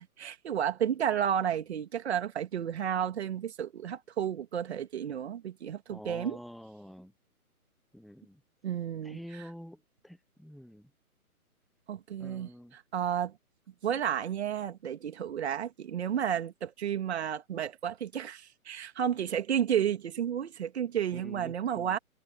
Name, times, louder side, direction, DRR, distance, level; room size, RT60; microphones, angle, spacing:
voice 1, 0.0-6.4 8.6-9.5 11.9-13.4 13.8-22.0, right 9 dB, 45° right, 2.6 m, -32 dB
voice 2, 5.9-7.1 7.9-8.4 9.0-9.8 10.0-10.9 12.2-12.7 21.1-22.0, equal, ahead, 0.4 m, -47 dB
hypercardioid pair, 150°, 44 cm